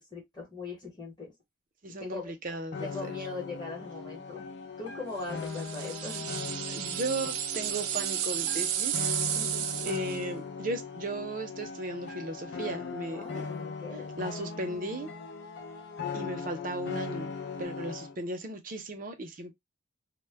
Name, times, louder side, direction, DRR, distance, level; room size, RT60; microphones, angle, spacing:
voice 1, 0.1-1.3 2.0-2.3 2.8-4.4 4.8-6.3 9.2-9.9 13.1-14.2, left 3 dB, 20° left, 0.9 m, -40 dB
voice 2, 1.8-3.1 6.7-9.1 9.8-13.2 14.2-15.1 16.1-17.3 17.6-19.5, right 2 dB, 40° right, 0.5 m, -36 dB
sound 1, 2.7-18.1, left 5 dB, 55° left, 0.4 m, -39 dB
sound 2, 5.4-10.2, right 11 dB, 90° right, 0.4 m, -32 dB
2.1 x 2.1 x 3.3 m
head